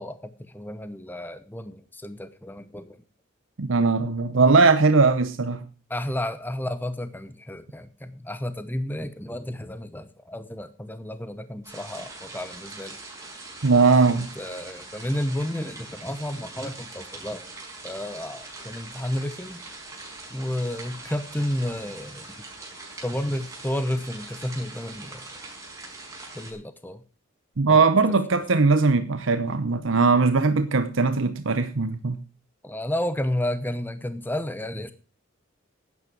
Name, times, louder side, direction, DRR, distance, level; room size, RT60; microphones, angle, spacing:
voice 1, 0.0-3.0 5.9-13.0 14.1-17.4 17.8-19.6 20.3-22.3 23.0-25.2 26.3-27.0 27.7-27.8 32.6-34.9, left 1 dB, 10° left, 0.9 m, -31 dB
voice 2, 3.6-5.6 13.6-14.3 27.6-32.2, right 4 dB, 75° right, 0.8 m, -20 dB
sound 1, 11.6-26.5, right 3 dB, 15° right, 5.3 m, -42 dB
11.5 x 9.6 x 6.1 m
head